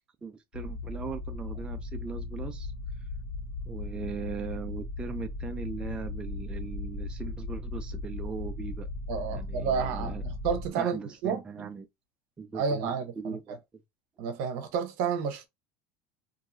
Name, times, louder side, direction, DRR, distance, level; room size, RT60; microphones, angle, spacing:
voice 1, 0.2-2.7 3.7-8.9 9.3-10.2 10.7-11.9 12.4-12.9 13.2-13.6, right 5 dB, 15° right, 0.4 m, -39 dB
sound 1, 0.5-10.7, left 2 dB, 45° left, 1.4 m, -37 dB
voice 2, 9.1-11.4 12.5-13.4 14.2-15.5, right 6 dB, 65° right, 0.8 m, -30 dB
2.9 x 2.6 x 2.5 m
supercardioid pair, 140°, 6 cm